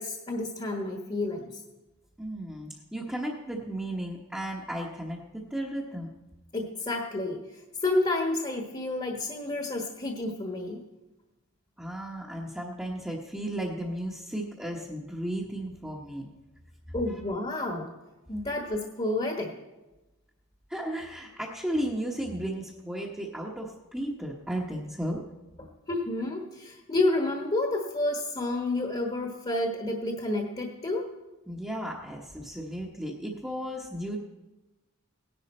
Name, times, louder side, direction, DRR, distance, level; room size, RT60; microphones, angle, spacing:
voice 1, 0.0-1.5 6.5-7.4 7.8-10.8 16.9-17.9 18.3-19.6 25.6-31.1, left 2 dB, 25° left, 2 dB, 1.3 m, -30 dB
voice 2, 2.2-5.2 5.5-6.1 11.8-16.3 16.9-17.2 20.7-25.2 31.5-34.2, right 1 dB, 5° right, -4 dB, 1.0 m, -34 dB
17.5 x 11.0 x 4.3 m, 1.1 s
head